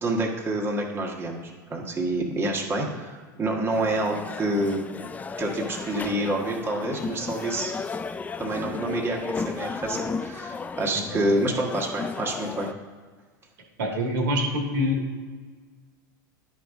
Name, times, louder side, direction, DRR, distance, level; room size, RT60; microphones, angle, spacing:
voice 1, 0.0-4.8 5.4-7.7 8.4-12.7, right 1 dB, 20° right, -1 dB, 1.4 m, -28 dB
sound 1, 3.7-12.7, left 4 dB, 15° left, 0.3 m, -34 dB
voice 2, 13.8-15.0, left 1 dB, 80° right, 1 dB, 1.8 m, -25 dB
10.5 x 5.1 x 3.6 m, 1.5 s
hypercardioid pair, 95°, 11 cm